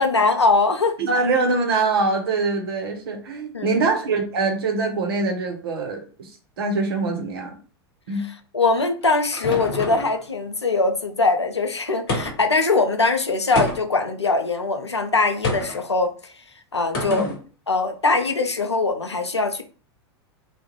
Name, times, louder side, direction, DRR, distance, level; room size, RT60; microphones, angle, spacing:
voice 1, 0.0-0.9 3.5-3.9 8.2-16.3 16.7-17.3 17.7-19.6, left 3 dB, 85° left, 0.4 m, -22 dB
voice 2, 1.0-6.3 6.6-7.5 8.1-8.2 17.0-17.3, right 3 dB, 60° right, 0.7 m, -23 dB
sound 1, 8.6-10.2 12.1-12.6 13.5-14.1 15.4-15.8 16.9-17.4, left 2 dB, 50° left, 0.9 m, -28 dB
2.3 x 2.1 x 3.0 m
figure-of-eight pair, 85°, 14 cm